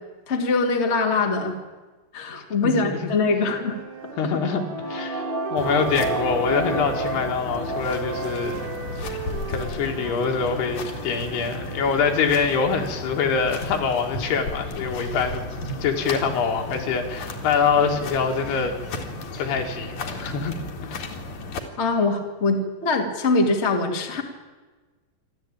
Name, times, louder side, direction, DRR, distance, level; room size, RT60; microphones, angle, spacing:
voice 1, 0.3-1.5 2.1-3.8 4.2-4.3 21.8-24.2, left 3 dB, 25° left, 2 dB, 1.5 m, -23 dB
voice 2, 2.6-3.1 4.2-8.6 9.0-15.5 15.8-18.7 19.4-20.5 20.8-21.1, left 5 dB, 70° left, 3 dB, 4.0 m, -25 dB
sound 1, 3.2-7.3 7.8-12.1, right 7 dB, 90° right, 3.9 m, -37 dB
sound 2, 4.0-8.8 9.1-9.2, right 2 dB, 65° right, 0.5 m, -31 dB
sound 3, 5.6-21.6, left 2 dB, 50° left, 2.8 m, -34 dB
27.5 x 12.5 x 8.9 m, 1.3 s
omnidirectional pair, 4.9 m